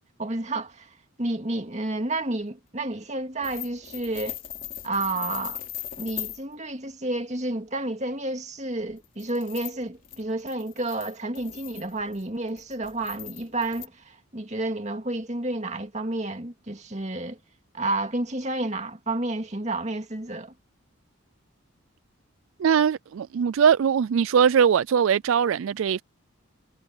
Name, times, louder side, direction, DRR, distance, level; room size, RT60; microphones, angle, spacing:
voice 1, 0.2-0.9 1.2-4.4 4.8-5.6 6.0-17.4 17.7-20.5, right 2 dB, 35° right, 2.2 m, -30 dB
sound 1, 3.4-6.4 8.9-13.9, left 12 dB, 40° left, 4.2 m, -39 dB
voice 2, 22.6-26.0, right 7 dB, 75° right, 0.3 m, -21 dB
head